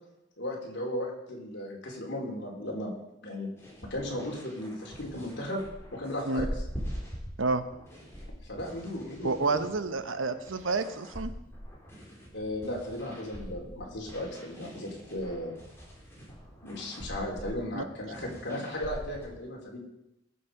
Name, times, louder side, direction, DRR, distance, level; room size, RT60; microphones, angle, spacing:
voice 1, 0.4-2.9 3.2-3.5 3.8-5.6 5.9-6.5 8.5-9.6 12.3-15.5 16.6-19.8, left 1 dB, 60° left, -1 dB, 3.8 m, -36 dB
sound 1, 3.6-19.2, equal, 15° left, 4.1 m, -43 dB
voice 2, 9.2-11.3 17.7-17.8, right 3 dB, 85° right, 10 dB, 1.0 m, -29 dB
19.5 x 7.4 x 5.0 m, 0.86 s
head